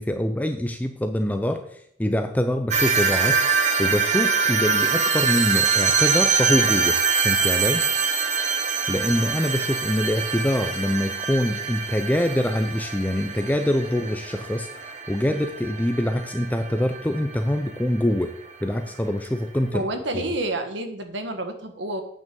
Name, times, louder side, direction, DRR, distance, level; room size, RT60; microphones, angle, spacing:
voice 1, 0.0-3.4 3.8-7.0 7.2-7.8 8.6-18.3 18.6-19.9, left 1 dB, 10° left, 7 dB, 0.5 m, -24 dB
sound 1, 2.7-17.7, right 5 dB, 40° right, 1.2 m, -24 dB
voice 2, 19.7-22.0, right 1 dB, 75° right, 6 dB, 1.6 m, -29 dB
8.9 x 6.4 x 6.9 m, 0.68 s
head